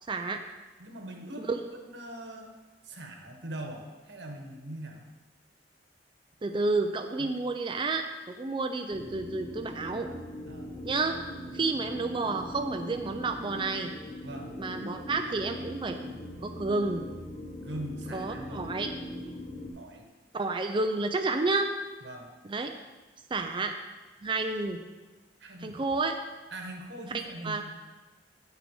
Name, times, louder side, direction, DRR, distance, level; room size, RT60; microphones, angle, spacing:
voice 1, 0.1-0.4 1.4-1.6 6.4-10.1 10.8-11.2 11.5-13.9 14.6-16.0 16.4-17.0 18.1-18.9 20.3-21.7 22.4-22.7 23.3-23.7 24.2-24.8 25.6-26.2 27.1-27.6, right 3 dB, 30° right, 5 dB, 0.5 m, -30 dB
voice 2, 0.8-1.5 1.9-2.5 2.8-5.0 7.2-7.3 10.5-10.7 14.2-14.5 17.6-18.7 19.8-20.1 22.0-22.3 25.4-25.7 26.5-27.7, right 1 dB, 75° right, 2 dB, 1.4 m, -41 dB
sound 1, 8.9-19.7, left 1 dB, 45° left, 1.1 m, -41 dB
8.3 x 6.0 x 5.5 m, 1.2 s
head